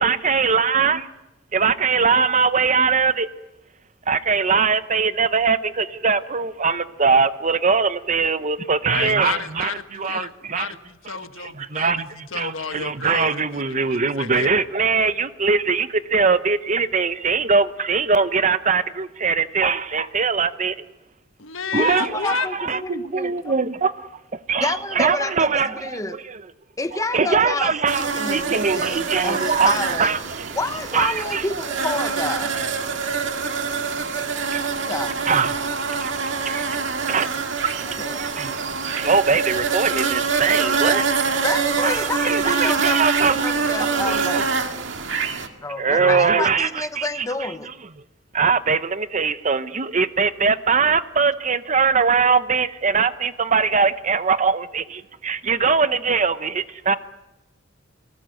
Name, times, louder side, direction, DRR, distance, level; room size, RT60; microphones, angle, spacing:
voice 1, 0.0-1.0 1.5-3.3 4.1-9.7 10.0-10.7 11.4-20.8 21.7-22.1 22.5-26.4 27.1-30.5 30.9-31.4 34.5-34.6 35.3-35.5 35.9-36.0 36.4-36.7 37.1-37.3 38.2-38.5 39.0-41.3 41.8-44.4 45.8-47.2 48.3-57.0, right 5 dB, 40° right, 13 dB, 0.9 m, -21 dB
voice 2, 8.9-12.0 12.3-14.5 21.4-22.5, left 5 dB, 90° left, 9 dB, 1.5 m, -31 dB
voice 3, 21.7-23.5 24.6-26.2 26.8-30.2 30.5-32.5 34.9-35.2 37.8-38.2 41.4-44.6 45.6-47.7, left 2 dB, 15° left, 10 dB, 1.0 m, -29 dB
sound 1, 27.9-45.5, right 5 dB, 70° right, 2.0 m, -25 dB
29.5 x 19.0 x 7.8 m, 1.0 s
head